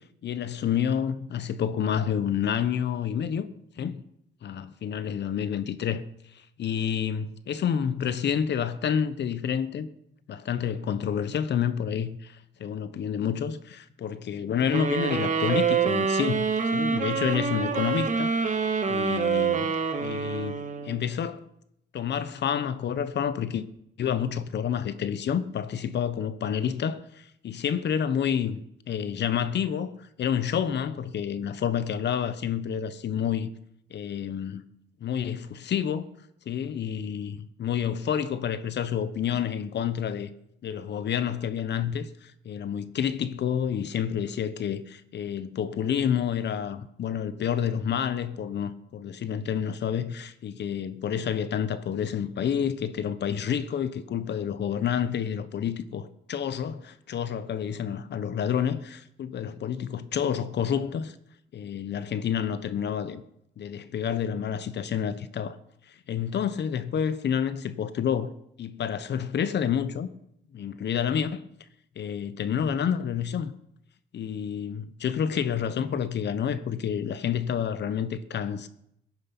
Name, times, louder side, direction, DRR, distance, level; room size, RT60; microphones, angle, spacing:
voice 1, 0.2-3.5 3.8-4.0 4.4-6.0 6.3-9.9 10.3-16.4 16.7-18.3 18.9-19.7 20.0-21.4 21.9-23.7 24.0-33.5 33.9-34.6 35.0-36.1 36.5-40.3 40.6-61.1 61.5-63.2 63.6-65.6 65.9-68.3 68.6-70.1 70.5-71.4 72.0-73.5 74.1-78.7, left 8 dB, 60° left, 1.1 m, -29 dB
sound 1, 14.7-21.1, right 5 dB, 40° right, 2.0 m, -26 dB
16.5 x 9.5 x 6.1 m
cardioid pair, 90°, 20 cm